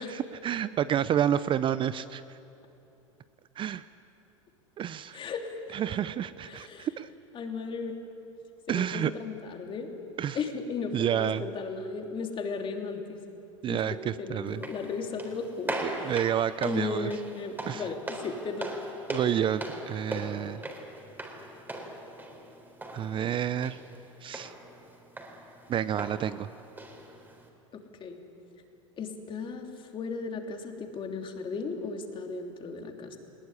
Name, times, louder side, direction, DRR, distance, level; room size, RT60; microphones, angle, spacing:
voice 1, 0.0-2.2 3.6-3.8 4.8-5.2 5.7-7.1 8.7-9.1 10.2-10.4 10.9-11.4 13.6-14.6 15.8-17.1 17.7-17.9 19.1-20.6 22.9-23.8 24.2-24.5 25.7-26.5, right 10 dB, 30° right, 15 dB, 0.6 m, -29 dB
voice 2, 5.1-6.0 6.4-6.9 7.3-8.0 8.7-9.9 10.3-13.4 13.7-16.2 16.6-18.8 27.7-28.2 29.0-33.2, left 4 dB, 30° left, 3 dB, 3.1 m, -36 dB
sound 1, 14.5-27.5, right 1 dB, 10° right, 4.0 m, -40 dB
20.5 x 19.0 x 9.8 m, 2.8 s
hypercardioid pair, 95°, 17 cm